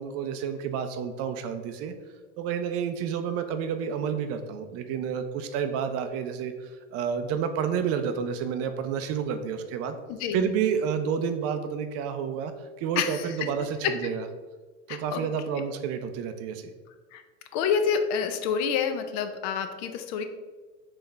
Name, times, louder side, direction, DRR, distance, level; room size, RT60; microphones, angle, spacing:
voice 1, 0.0-1.9 2.4-10.0 10.3-12.5 12.8-14.2 14.9-16.7, right 7 dB, 40° right, 8 dB, 0.5 m, -30 dB
voice 2, 10.1-10.4 13.0-13.5 13.8-13.9 14.9-15.3 17.1-17.2 17.5-20.2, left 7 dB, 45° left, 8 dB, 0.5 m, -28 dB
3.7 x 3.3 x 4.0 m, 1.4 s
hypercardioid pair, 95°, 37 cm